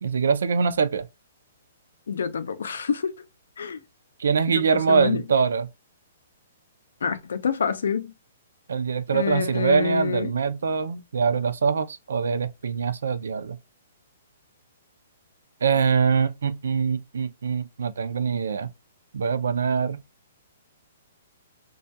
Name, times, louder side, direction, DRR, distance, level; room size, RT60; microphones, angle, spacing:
voice 1, 0.0-1.1 4.2-5.7 8.7-13.6 15.6-18.7 19.1-20.0, right 6 dB, 85° right, 0.4 m, -23 dB
voice 2, 2.1-3.1 3.6-3.8 4.5-5.2 7.0-8.1 9.1-10.3, left 6 dB, 80° left, 0.5 m, -27 dB
2.3 x 2.2 x 2.7 m
hypercardioid pair, 175°, 0 cm